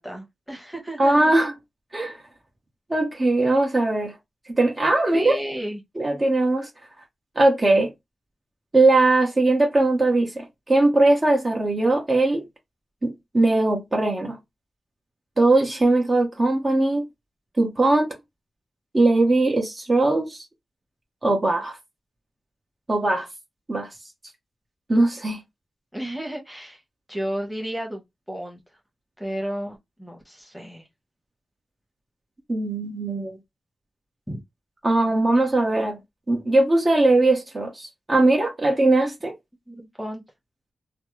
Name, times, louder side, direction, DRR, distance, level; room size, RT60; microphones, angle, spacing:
voice 1, 0.0-1.3 5.1-5.8 25.9-26.8 27.1-28.6 29.2-30.9 34.3-34.4 39.7-40.2, equal, 5° left, 1.2 m, -32 dB
voice 2, 1.0-1.5 1.9-2.2 2.9-4.1 4.5-5.4 6.0-6.7 7.4-7.9 8.7-12.5 13.0-14.4 15.4-17.1 17.6-18.2 18.9-20.4 21.2-21.8 22.9-23.3 23.7-23.9 24.9-25.4 32.5-33.4 34.8-36.0 36.3-39.3, right 2 dB, 35° right, 1.0 m, -20 dB
3.2 x 2.0 x 3.0 m
cardioid pair, 70°, 0 cm